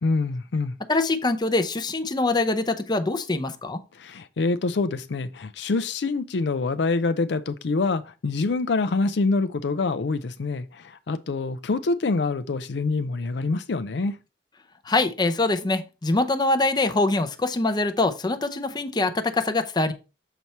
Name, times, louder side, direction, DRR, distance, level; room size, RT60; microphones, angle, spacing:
voice 1, 0.0-0.8 3.9-14.2, left 3 dB, 70° left, 0.5 m, -26 dB
voice 2, 0.9-3.8 14.8-19.9, left 2 dB, 25° left, 0.6 m, -24 dB
6.9 x 4.5 x 4.2 m
head